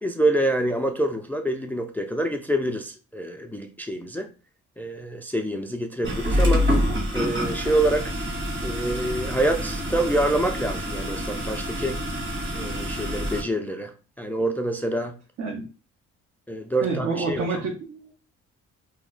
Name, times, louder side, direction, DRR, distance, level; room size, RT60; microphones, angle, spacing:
voice 1, 0.0-4.3 4.8-6.7 7.1-8.1 8.6-12.0 12.5-15.2 16.5-17.5, right 1 dB, 5° left, 0.3 m, -26 dB
sound 1, 6.0-13.4, equal, 40° right, 1.5 m, -27 dB
voice 2, 16.8-18.1, right 4 dB, 60° right, 0.9 m, -28 dB
2.9 x 2.1 x 3.7 m
cardioid pair, 90°, 30 cm